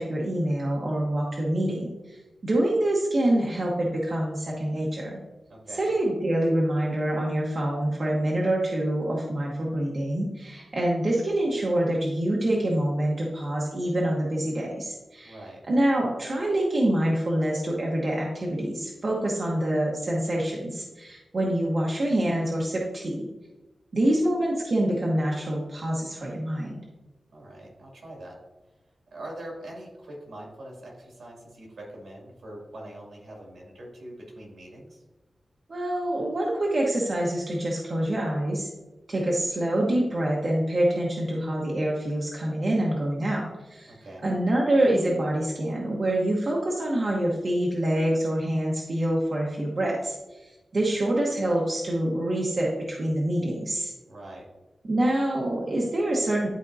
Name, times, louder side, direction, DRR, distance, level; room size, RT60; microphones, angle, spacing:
voice 1, 0.0-5.2 5.8-15.4 15.7-23.3 23.9-26.8 35.7-38.7 39.1-43.9 44.2-53.9 54.8-56.5, right 1 dB, 45° right, -3 dB, 1.0 m, -26 dB
voice 2, 5.5-5.9 15.2-15.6 27.3-28.4 29.1-35.0 43.9-44.3 54.1-54.5, right 1 dB, 75° right, -2 dB, 2.3 m, -43 dB
11.0 x 4.4 x 2.7 m, 1.1 s
wide cardioid pair, 140°, 0 cm